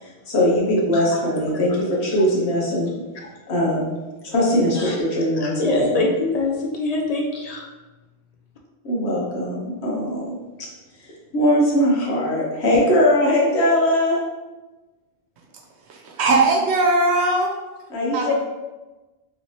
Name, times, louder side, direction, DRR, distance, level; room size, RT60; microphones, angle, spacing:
voice 1, 0.0-2.9 3.5-3.9 4.2-6.0 8.8-10.3 11.3-14.2 17.9-18.3, left 1 dB, 85° left, -4 dB, 1.2 m, -20 dB
voice 2, 5.4-7.7, left 2 dB, 50° left, 0 dB, 0.5 m, -24 dB
voice 3, 15.9-17.5 18.1-18.3, right 2 dB, 90° right, 0 dB, 1.0 m, -19 dB
3.2 x 2.8 x 3.1 m, 1.1 s
omnidirectional pair, 1.1 m